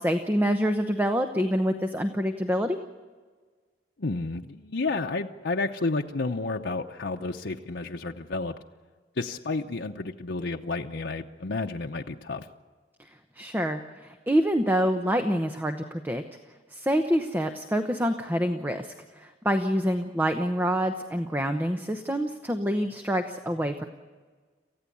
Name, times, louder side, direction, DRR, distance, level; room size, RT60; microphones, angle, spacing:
voice 1, 0.0-2.8 13.0-13.1 13.4-16.2 16.7-23.8, equal, 10° right, 6 dB, 0.9 m, -26 dB
voice 2, 4.0-8.5 9.2-12.5, left 3 dB, 80° left, 2 dB, 0.8 m, -31 dB
28.0 x 15.5 x 8.6 m, 1.5 s
head